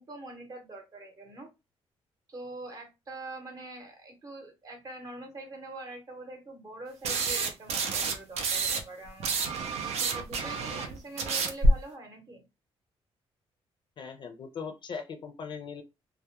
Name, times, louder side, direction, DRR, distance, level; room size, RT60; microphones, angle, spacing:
voice 1, 0.0-1.5 2.3-9.4 9.8-12.4, right 2 dB, 35° right, 3 dB, 0.8 m, -44 dB
sound 1, 7.0-8.8 9.1-11.7, right 3 dB, 85° right, 0.5 m, -28 dB
voice 2, 14.0-15.8, left 6 dB, 45° left, 6 dB, 0.4 m, -39 dB
2.2 x 2.0 x 2.8 m, 0.25 s
cardioid pair, 150°, 11 cm